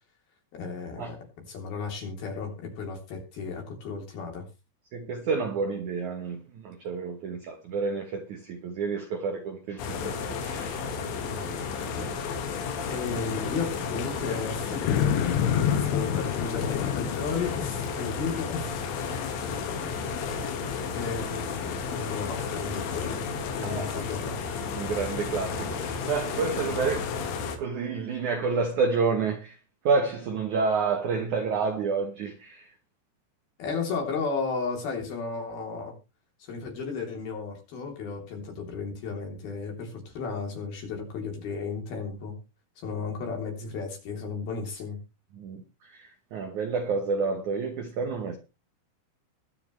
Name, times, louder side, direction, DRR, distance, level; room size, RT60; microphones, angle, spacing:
voice 1, 0.5-1.2 1.5-4.4 11.9-12.1 12.9-14.9 15.9-18.8 20.9-23.3 23.5-24.4 33.6-35.9 36.4-42.3 42.8-45.0, left 5 dB, 55° left, 5.0 m, -34 dB
voice 2, 4.9-10.8 11.6-11.7 23.6-24.0 24.7-27.3 27.6-29.6 29.8-32.7 45.4-48.4, right 4 dB, 75° right, 1.8 m, -29 dB
sound 1, 9.8-27.6, left 5 dB, 90° left, 4.4 m, -32 dB
sound 2, 14.9-17.9, left 9 dB, 70° left, 2.9 m, -27 dB
22.0 x 7.5 x 3.2 m
omnidirectional pair, 5.4 m